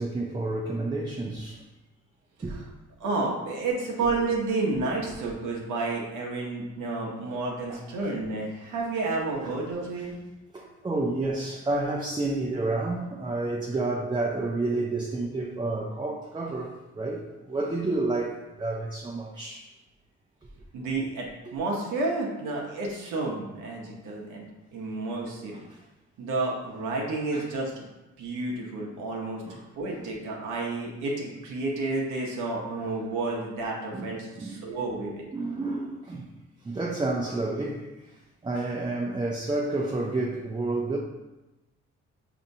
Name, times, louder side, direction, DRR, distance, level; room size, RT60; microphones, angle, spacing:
voice 1, 0.0-1.6 2.4-2.5 5.2-5.3 7.7-7.8 9.4-9.6 10.0-10.1 10.5-19.7 21.5-21.6 25.5-25.8 27.3-27.5 29.4-30.0 33.9-34.7 35.3-36.3 36.6-41.0, right 2 dB, 15° right, 0.4 m, -30 dB
voice 2, 3.0-10.2 20.7-21.3 21.5-25.6 26.2-27.7 28.2-29.4 29.8-35.3, right 3 dB, 85° right, 0.8 m, -30 dB
5.0 x 2.8 x 2.6 m
cardioid pair, 90°, 30 cm